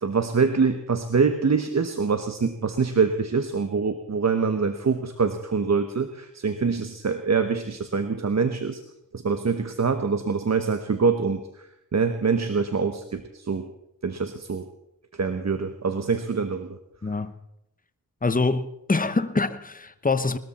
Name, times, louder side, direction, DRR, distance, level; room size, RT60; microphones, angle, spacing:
voice 1, 0.0-8.8 9.1-11.4 11.9-13.7 14.0-14.7 15.1-16.8 17.1-17.2, right 5 dB, 45° right, 1.2 m, -25 dB
voice 2, 17.0-17.3 18.2-20.4, left 3 dB, 25° left, 1.1 m, -25 dB
20.0 x 13.5 x 4.3 m
cardioid pair, 50°, 36 cm